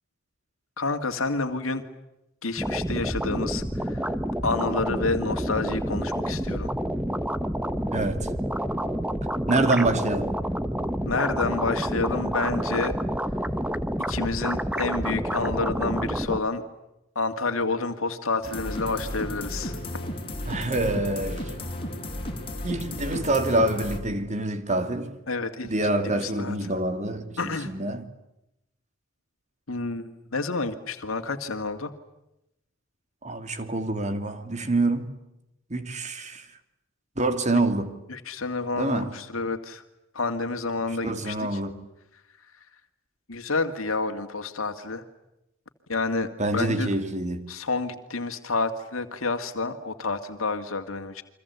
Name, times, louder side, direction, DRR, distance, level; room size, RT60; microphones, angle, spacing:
voice 1, 0.8-1.8 2.4-4.2 4.4-6.7 11.1-13.0 14.1-16.6 17.2-19.8 25.3-25.7 26.0-26.7 27.4-27.7 29.7-31.9 38.1-39.8 40.1-41.6 43.3-45.0 45.9-46.9 47.5-51.2, left 3 dB, 85° left, 2.2 m, -29 dB
sound 1, 2.6-16.4, equal, 5° right, 1.2 m, -29 dB
voice 2, 7.9-8.3 9.5-10.3 20.4-21.5 22.6-25.2 25.7-27.4 27.6-28.1 33.2-35.2 35.7-36.5 37.2-38.0 38.7-39.1 41.0-41.8 46.4-47.4, right 2 dB, 35° right, 2.8 m, -26 dB
sound 2, 18.4-24.0, left 1 dB, 25° left, 5.2 m, -34 dB
30.0 x 24.0 x 8.2 m
head